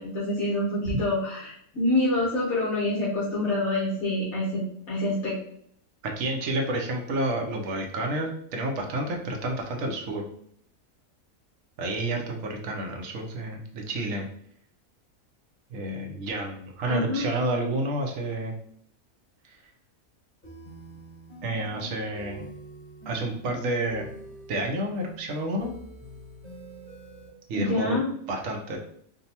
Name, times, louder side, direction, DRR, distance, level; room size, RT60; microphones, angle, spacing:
voice 1, 0.0-5.4 16.8-17.3 27.5-28.1, left 1 dB, 65° left, -7 dB, 1.4 m, -27 dB
voice 2, 6.0-10.2 11.8-14.3 15.7-18.5 19.4-19.6 21.4-22.5 23.1-24.1 24.5-25.7 27.5-28.0 28.3-28.8, right 1 dB, 70° right, 2 dB, 1.1 m, -30 dB
sound 1, 20.4-27.3, right 1 dB, 50° left, 1.6 m, -46 dB
5.1 x 2.3 x 2.8 m, 0.66 s
omnidirectional pair, 1.5 m